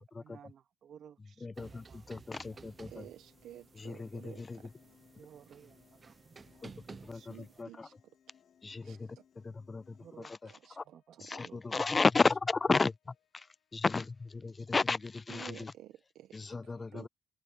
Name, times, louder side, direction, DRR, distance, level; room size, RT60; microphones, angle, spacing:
voice 1, 0.2-2.4 5.1-7.3 7.6-7.7 10.0-10.3 10.8-11.6, right 8 dB, 65° right, 2.5 m, -57 dB
voice 2, 1.4-3.1 3.8-4.6 6.6-6.7 7.0-7.9 8.6-10.8 11.2-15.7 16.3-17.1, left 4 dB, 30° left, 0.3 m, -33 dB
sound 1, 1.6-7.6, right 4 dB, 35° right, 0.8 m, -54 dB
Piano, 2.3-10.3, left 8 dB, 55° left, 7.4 m, -66 dB
voice 3, 2.9-4.7 7.3-8.0 8.8-9.2 10.4-11.4 15.3-17.1, right 13 dB, 85° right, 1.0 m, -53 dB
sound 2, 4.3-14.4, left 12 dB, 85° left, 5.8 m, -77 dB
cardioid pair, 90°, 0 cm